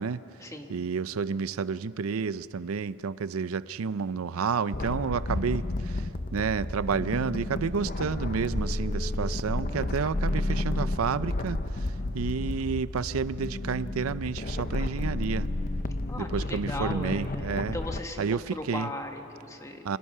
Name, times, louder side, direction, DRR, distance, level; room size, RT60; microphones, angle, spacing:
voice 1, 0.7-15.5 16.2-17.8 18.2-18.9 19.8-20.0, right 5 dB, 90° right, 16 dB, 0.5 m, -30 dB
sound 1, 4.7-18.0, left 2 dB, 40° left, 0.7 m, -31 dB
voice 2, 16.1-20.0, left 1 dB, 15° left, 4 dB, 1.4 m, -38 dB
29.5 x 25.5 x 5.6 m, 3.0 s
head